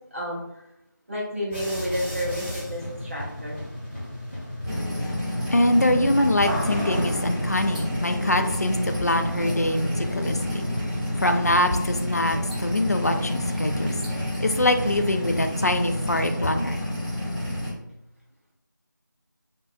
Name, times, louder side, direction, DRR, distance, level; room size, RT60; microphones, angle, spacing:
voice 1, 0.1-0.6 1.1-3.6, equal, 40° right, -5 dB, 0.9 m, -31 dB
sound 1, 1.5-16.9, left 1 dB, 35° left, 1.2 m, -36 dB
sound 2, 4.6-17.7, left 1 dB, 20° right, 1.2 m, -29 dB
voice 2, 5.5-10.6 11.2-13.9 14.4-16.8, left 1 dB, 50° left, 6 dB, 0.4 m, -24 dB
3.7 x 2.6 x 2.4 m, 0.84 s
figure-of-eight pair, 170°, 11 cm